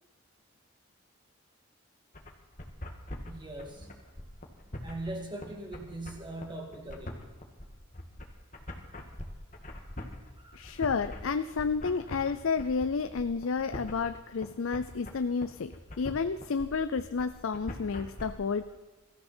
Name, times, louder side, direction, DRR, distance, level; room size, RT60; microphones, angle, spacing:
sound 1, 2.1-18.2, left 1 dB, 40° left, 1.8 m, -43 dB
voice 1, 3.2-4.0 4.8-7.2 10.4-10.8, right 2 dB, 20° right, 1 dB, 2.4 m, -41 dB
voice 2, 10.5-18.8, left 5 dB, 85° left, 12 dB, 0.5 m, -31 dB
23.0 x 14.0 x 4.4 m, 1.2 s
head